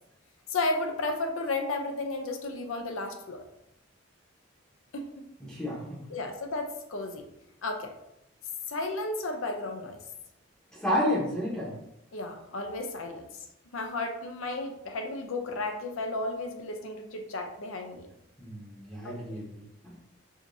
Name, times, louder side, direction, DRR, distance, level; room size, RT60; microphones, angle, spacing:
voice 1, 0.5-3.4 4.9-5.1 6.1-7.3 7.6-7.9 8.7-10.0 12.1-13.2 13.7-18.1 19.0-19.1, left 2 dB, 80° left, 4 dB, 0.6 m, -33 dB
voice 2, 5.4-6.0 10.7-11.7 18.4-19.5 19.8-19.9, left 1 dB, 5° left, -7 dB, 0.8 m, -30 dB
4.9 x 2.8 x 2.6 m, 0.83 s
head